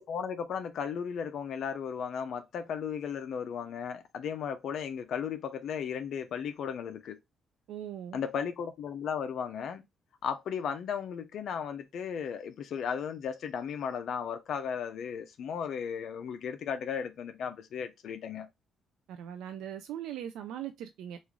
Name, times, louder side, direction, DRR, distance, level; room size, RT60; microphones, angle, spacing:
voice 1, 0.0-7.2 8.1-9.8 10.2-18.5, left 7 dB, 70° left, 0.5 m, -35 dB
voice 2, 7.7-8.2 19.1-21.2, right 10 dB, 85° right, 0.4 m, -40 dB
3.1 x 2.4 x 3.5 m
cardioid pair, 90°, 0 cm